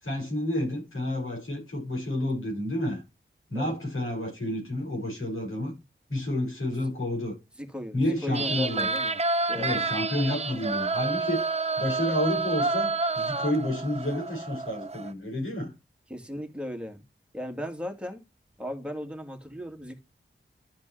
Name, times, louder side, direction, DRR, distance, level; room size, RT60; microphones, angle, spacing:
voice 1, 0.0-3.0 3.5-5.8 6.1-7.3 7.9-8.9 9.5-11.4 11.8-15.7, left 1 dB, 80° left, 6.0 m, -30 dB
voice 2, 7.6-9.2 9.5-10.0 16.1-17.0 17.3-18.2 18.6-20.0, equal, 5° right, 2.3 m, -36 dB
sound 1, 8.3-15.1, right 3 dB, 30° right, 0.6 m, -29 dB
12.5 x 5.1 x 3.3 m
cardioid pair, 45°, 21 cm